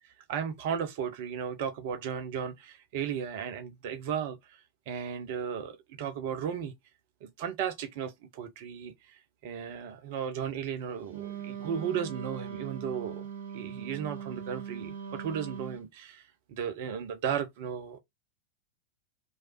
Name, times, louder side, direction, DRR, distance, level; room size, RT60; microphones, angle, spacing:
voice 1, 0.3-6.7 7.2-13.3 13.5-18.0, right 8 dB, 50° right, 0.5 m, -35 dB
Wind instrument woodwind instrument, 11.1-15.8, right 8 dB, 65° right, 0.9 m, -40 dB
3.0 x 2.3 x 2.9 m
figure-of-eight pair, 90°, 0 cm